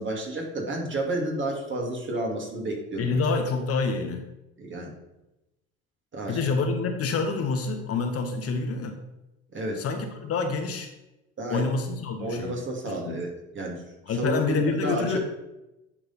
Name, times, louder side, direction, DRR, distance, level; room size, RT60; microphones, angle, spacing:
voice 1, 0.0-3.2 4.6-4.9 6.1-6.5 9.5-9.9 11.4-11.7 12.2-13.8 14.1-15.2, right 2 dB, 35° right, 0 dB, 2.3 m, -31 dB
voice 2, 3.0-4.2 6.3-9.0 9.8-10.9 11.5-12.6 13.0-13.2 14.1-15.2, left 4 dB, 45° left, 5 dB, 1.1 m, -27 dB
9.9 x 3.7 x 4.2 m, 0.95 s
hypercardioid pair, 70°, 32 cm